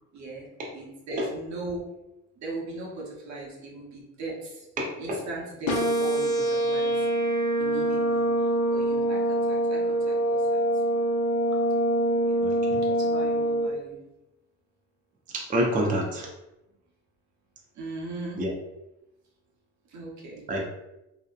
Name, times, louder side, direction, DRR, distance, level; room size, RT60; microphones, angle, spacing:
voice 1, 0.1-0.5 0.7-1.9 2.4-4.7 5.0-7.1 7.6-10.8 12.3-12.4 12.8-14.0 17.7-18.4 19.9-20.4, right 2 dB, 65° right, -2 dB, 0.8 m, -39 dB
voice 2, 4.8-5.2 12.4-12.8 15.3-16.3 18.4-18.5 20.5-20.7, equal, 25° right, -1 dB, 0.5 m, -27 dB
sound 1, 5.7-13.7, right 1 dB, 70° left, 0.6 m, -24 dB
2.7 x 2.1 x 2.3 m, 0.93 s
cardioid pair, 90°, 30 cm